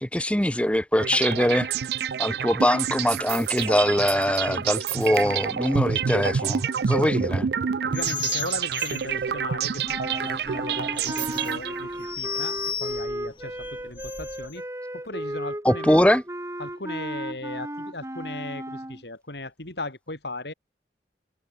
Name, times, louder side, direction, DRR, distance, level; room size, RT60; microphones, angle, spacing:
voice 1, 0.0-1.7 2.2-7.5 15.6-16.2, left 1 dB, 5° left, 1.0 m, -22 dB
sound 1, 1.0-12.1, right 7 dB, 65° right, 0.4 m, -28 dB
voice 2, 7.8-14.6 14.9-16.0 16.6-20.5, left 2 dB, 75° left, 5.2 m, -37 dB
sound 2, 7.9-14.6, left 7 dB, 30° left, 3.8 m, -36 dB
sound 3, 9.9-19.0, right 1 dB, 15° right, 3.5 m, -34 dB
head